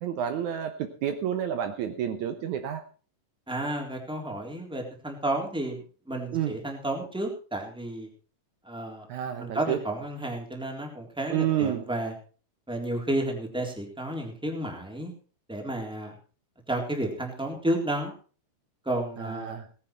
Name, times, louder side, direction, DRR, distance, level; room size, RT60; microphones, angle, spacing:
voice 1, 0.0-2.8 6.3-6.6 9.1-9.8 11.3-11.8 19.2-19.7, right 10 dB, 70° right, 7 dB, 2.3 m, -29 dB
voice 2, 3.5-8.1 8.6-9.1 9.4-12.1 12.7-15.1 15.5-16.1 16.7-18.1 18.8-19.5, right 1 dB, ahead, 1 dB, 3.2 m, -31 dB
18.0 x 10.0 x 4.5 m, 0.39 s
omnidirectional pair, 3.8 m